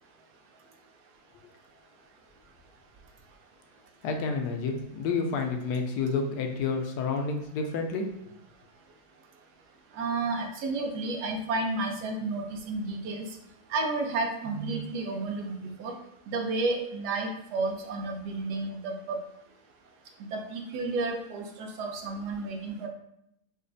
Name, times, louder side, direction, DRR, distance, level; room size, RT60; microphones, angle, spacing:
voice 1, 4.0-8.1, left 4 dB, 80° left, 3 dB, 1.1 m, -30 dB
voice 2, 9.9-13.3 13.7-15.9 16.3-19.2 20.3-22.9, right 3 dB, 90° right, 3 dB, 1.2 m, -31 dB
5.1 x 2.3 x 2.5 m, 0.79 s
omnidirectional pair, 1.7 m